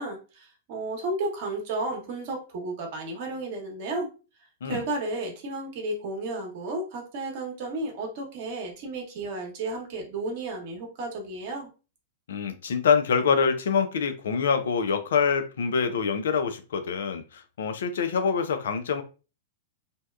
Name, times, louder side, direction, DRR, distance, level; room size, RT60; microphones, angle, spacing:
voice 1, 0.0-4.1 4.6-11.7, right 2 dB, 55° right, 0.9 m, -33 dB
voice 2, 12.3-19.0, left 6 dB, 70° left, 0.4 m, -25 dB
2.7 x 2.2 x 2.3 m
hypercardioid pair, 105°, 0 cm